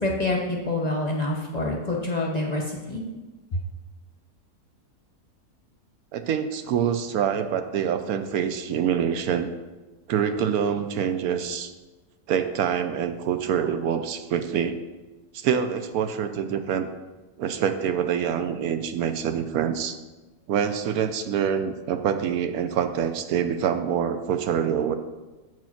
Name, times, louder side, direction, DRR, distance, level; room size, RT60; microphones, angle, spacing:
voice 1, 0.0-3.0, left 2 dB, 35° left, -1 dB, 0.8 m, -27 dB
voice 2, 6.1-9.5 10.1-11.7 12.3-14.8 15.3-16.9 17.4-20.0 20.5-24.9, right 8 dB, 75° right, 8 dB, 1.0 m, -25 dB
7.6 x 4.7 x 5.8 m, 1.2 s
omnidirectional pair, 1.7 m